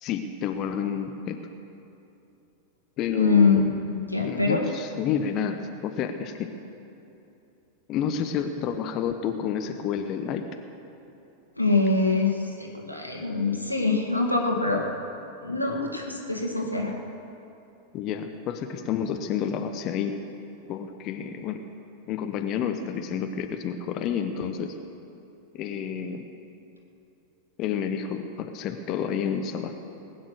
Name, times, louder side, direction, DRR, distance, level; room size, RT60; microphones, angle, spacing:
voice 1, 0.0-1.4 3.0-3.6 4.2-6.5 7.9-10.4 17.9-20.2 20.7-21.6 22.1-24.7 25.5-26.2 27.6-29.7, left 8 dB, 35° left, 6 dB, 1.0 m, -29 dB
voice 2, 3.1-4.6 11.6-14.9 15.4-16.9, left 3 dB, 90° left, -1 dB, 2.0 m, -24 dB
20.0 x 9.4 x 6.5 m, 2.8 s
figure-of-eight pair, 90°, 0 cm